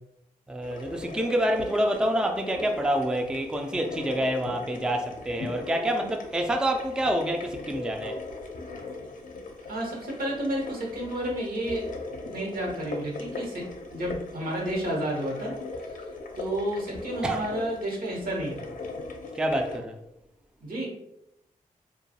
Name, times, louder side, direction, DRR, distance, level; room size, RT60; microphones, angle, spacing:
voice 1, 0.5-8.2 17.2-17.4 19.3-20.0, right 1 dB, 5° right, 0.3 m, -27 dB
sound 1, 0.6-19.8, left 3 dB, 60° left, 0.5 m, -39 dB
voice 2, 9.6-11.9 12.2-13.6 13.9-15.5 16.0-16.1 16.4-18.7 20.6-20.9, right 1 dB, 75° right, 0.9 m, -31 dB
2.3 x 2.2 x 2.7 m
cardioid pair, 50°, 15 cm